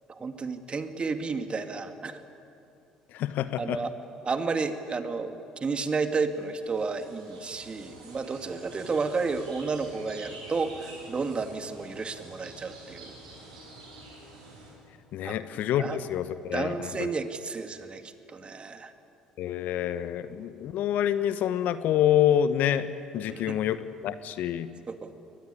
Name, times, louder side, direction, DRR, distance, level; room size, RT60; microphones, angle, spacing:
voice 1, 0.1-2.2 3.6-3.9 4.2-13.2 15.2-15.4 15.8-16.0 16.5-18.9 23.2-23.6 24.9-25.1, right 4 dB, 35° right, 8 dB, 2.1 m, -32 dB
voice 2, 3.1-3.8 15.1-17.1 19.4-22.9 23.1-23.8 24.0-24.7, left 10 dB, 60° left, 13 dB, 1.1 m, -27 dB
sound 1, 6.3-14.7, right 2 dB, 90° right, 6.4 m, -48 dB
22.5 x 19.5 x 9.9 m, 2.7 s
hypercardioid pair, 55°, 3 cm